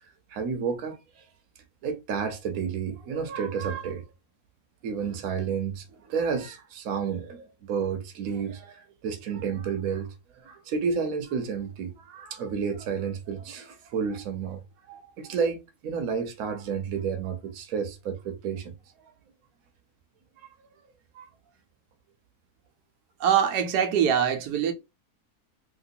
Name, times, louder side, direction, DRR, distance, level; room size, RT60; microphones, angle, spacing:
voice 1, 0.3-1.0 1.8-4.0 4.8-10.1 10.4-14.6 14.9-18.7 21.2-21.3, right 6 dB, 65° right, 1.1 m, -31 dB
voice 2, 23.2-24.7, right 8 dB, 90° right, 1.2 m, -23 dB
3.0 x 2.9 x 2.6 m
omnidirectional pair, 1.7 m